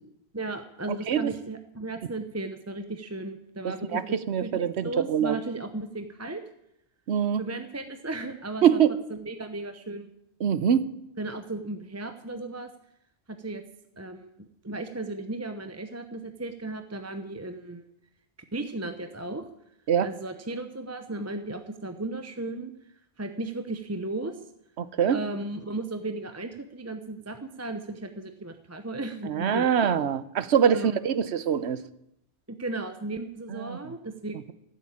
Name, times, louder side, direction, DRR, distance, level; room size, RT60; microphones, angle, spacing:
voice 1, 0.3-6.4 7.4-8.8 9.1-10.1 11.2-12.7 13.3-13.6 14.0-17.8 18.5-19.4 20.0-22.7 23.2-24.4 25.1-29.9 30.7-31.0 32.5-34.4, right 2 dB, 15° right, 7 dB, 0.7 m, -35 dB
voice 2, 3.9-5.4 7.1-7.4 8.6-9.0 10.4-10.9 19.9-20.1 24.8-25.2 29.3-31.8 33.5-33.8, right 8 dB, 70° right, 15 dB, 1.0 m, -24 dB
15.5 x 8.2 x 8.7 m, 0.80 s
omnidirectional pair, 1.2 m